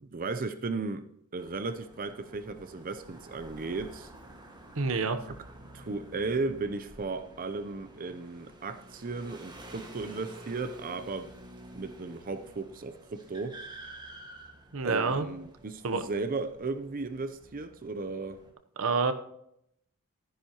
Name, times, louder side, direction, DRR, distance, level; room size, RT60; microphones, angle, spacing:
voice 1, 0.0-4.1 5.3-5.4 5.7-11.3 11.7-13.6 14.8-18.4, right 3 dB, 40° right, 0.6 m, -35 dB
sound 1, 1.4-18.5, right 1 dB, 20° right, 1.7 m, -50 dB
voice 2, 4.8-5.2 14.7-15.3 15.8-16.0 18.8-19.1, right 4 dB, 65° right, 0.9 m, -27 dB
13.0 x 10.0 x 3.0 m
head